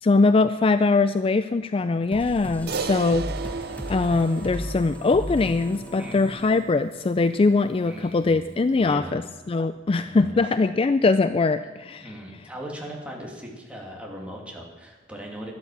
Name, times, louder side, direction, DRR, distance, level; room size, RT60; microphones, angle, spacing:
voice 1, 0.0-3.3 3.9-12.1, left 3 dB, 30° left, 12 dB, 0.4 m, -22 dB
sound 1, 2.1-7.4, equal, 10° left, 1.1 m, -36 dB
voice 2, 2.5-2.9 6.0-6.4 7.8-9.2 9.9-10.4 12.0-15.5, equal, 5° right, -1 dB, 2.7 m, -39 dB
Crash cymbal, 2.7-7.2, right 5 dB, 60° right, 0.6 m, -35 dB
12.0 x 11.5 x 7.4 m, 1.3 s
head